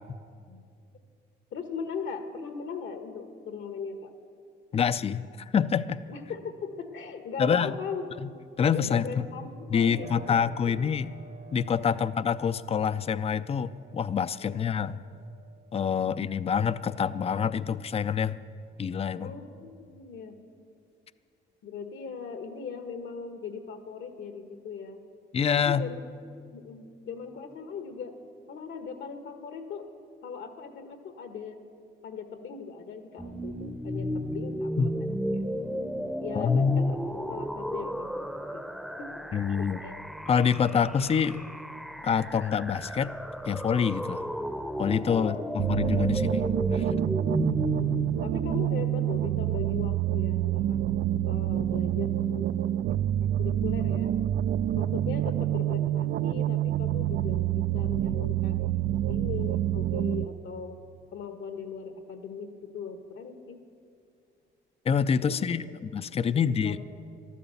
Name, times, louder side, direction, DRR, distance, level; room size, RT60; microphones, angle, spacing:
voice 1, 1.5-4.1 6.1-8.4 8.7-10.1 10.4-10.5 10.8-10.9 14.4-14.6 19.1-20.4 21.6-25.0 25.6-26.0 26.5-28.1 28.5-29.9 30.2-31.6 32.0-35.4 36.2-37.0 37.3-38.6 39.0-39.1 39.6-39.9 45.1-45.4 47.8-50.8 51.2-52.8 53.2-54.1 54.7-58.6 59.1-60.8 61.1-63.6 65.3-65.5 66.3-66.8, left 5 dB, 70° left, 7 dB, 1.4 m, -39 dB
voice 2, 4.7-5.2 5.5-6.0 7.4-7.7 8.2-8.3 8.6-9.1 9.7-11.1 11.5-15.0 15.7-18.4 18.8-19.3 25.3-25.9 34.8-34.9 36.3-37.0 39.3-39.8 40.3-41.5 42.0-43.1 43.5-44.2 44.8-46.5 46.7-46.9 64.9-66.8, left 7 dB, 30° left, 15 dB, 0.4 m, -26 dB
Piano, 10.0-18.5 18.9-19.9, right 4 dB, 40° right, 0.9 m, -51 dB
sound 1, 33.2-48.6, equal, ahead, 0.7 m, -34 dB
sound 2, 45.6-60.2, right 12 dB, 65° right, 0.4 m, -27 dB
12.5 x 12.0 x 7.0 m, 2.3 s
cardioid pair, 90°, 20 cm